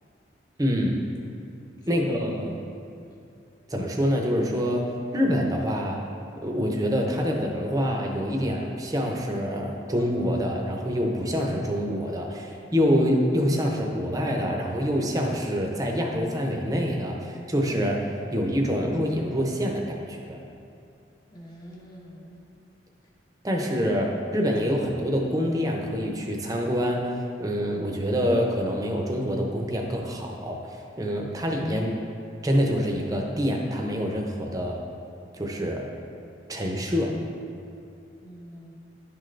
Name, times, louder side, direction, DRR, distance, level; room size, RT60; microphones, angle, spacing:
voice 1, 0.6-1.0 1.9-2.6 3.7-6.0 6.4-20.4 23.4-27.1 27.4-32.0 32.4-34.8 35.3-35.9 36.5-37.2, equal, 20° right, 0 dB, 0.6 m, -26 dB
voice 2, 1.8-2.5 3.0-3.2 21.3-22.5 23.5-24.1 38.2-38.8, equal, 25° left, -4 dB, 0.8 m, -45 dB
10.5 x 3.9 x 3.3 m, 2.5 s
head